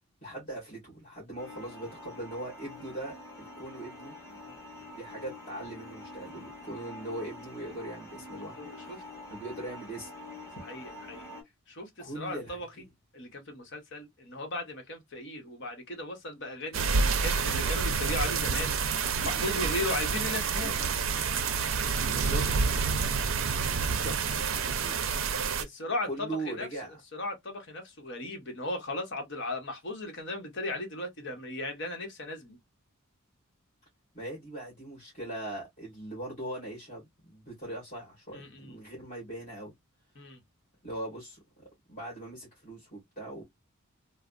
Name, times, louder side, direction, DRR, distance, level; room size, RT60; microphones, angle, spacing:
voice 1, 0.2-4.2 4.9-9.0 9.3-10.1 12.0-12.9 19.1-19.4 20.5-20.7 22.1-22.4 23.9-25.0 26.1-27.0 34.1-39.7 40.8-41.4 41.9-43.4, right 1 dB, 35° left, 1.6 m, -40 dB
sound 1, 1.4-11.4, left 2 dB, 15° left, 1.7 m, -46 dB
voice 2, 4.3-5.0 8.6-9.0 10.6-11.3 11.7-12.7 13.1-20.7 25.6-26.7 27.1-32.6 38.3-38.8 40.1-40.4, left 2 dB, 55° left, 1.0 m, -37 dB
sound 2, 16.7-25.6, right 5 dB, 65° right, 0.5 m, -28 dB
3.2 x 2.0 x 2.4 m
head